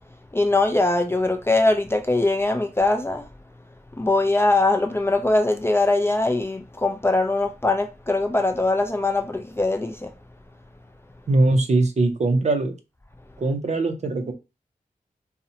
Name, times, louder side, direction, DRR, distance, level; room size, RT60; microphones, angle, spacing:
voice 1, 0.3-3.3 3.9-10.1, left 2 dB, 15° left, 0.3 m, -21 dB
voice 2, 11.3-12.7 13.4-14.3, right 2 dB, 50° right, 0.4 m, -21 dB
2.7 x 2.0 x 2.7 m
wide cardioid pair, 80°, 15 cm